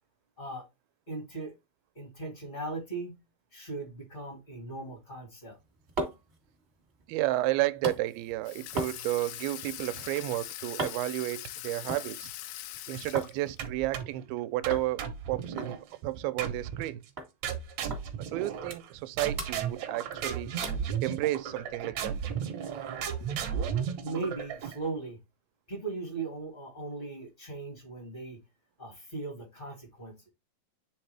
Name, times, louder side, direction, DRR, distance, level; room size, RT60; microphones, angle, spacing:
voice 1, 1.1-1.5 1.9-3.1 3.5-5.6 24.0-25.2 25.7-28.4 28.8-30.3, right 3 dB, 35° left, 0.8 m, -38 dB
sound 1, 5.4-13.3 13.7-14.3 14.7-14.9 15.2-15.3 15.6-16.9 17.2-17.3 17.9-18.0 18.4-19.1 19.3-20.2 20.6-20.9 21.4-21.5, right 2 dB, 40° right, 0.9 m, -40 dB
voice 2, 7.1-12.3 12.9-15.8 16.0-17.0 18.3-20.5 21.0-22.2, right 17 dB, 85° right, 2.4 m, -32 dB
Water tap faucet / Sink (filling or washing), 8.5-13.7, left 14 dB, 80° left, 2.4 m, -42 dB
sound 2, 13.6-14.2 14.6-15.8 16.4-16.9 17.4-18.9 19.2-24.9, right 7 dB, 70° right, 1.7 m, -34 dB
9.4 x 3.6 x 3.3 m
omnidirectional pair, 4.3 m